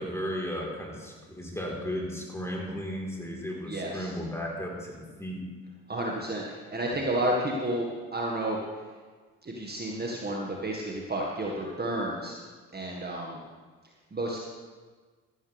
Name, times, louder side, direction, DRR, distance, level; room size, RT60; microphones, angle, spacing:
voice 1, 0.0-5.4, equal, 5° left, -2 dB, 4.1 m, -35 dB
voice 2, 3.7-4.1 5.9-8.6 9.4-12.3 12.7-13.4 14.1-14.4, right 1 dB, 25° right, -2 dB, 1.8 m, -31 dB
14.0 x 13.0 x 3.5 m, 1.5 s
hypercardioid pair, 55°, 38 cm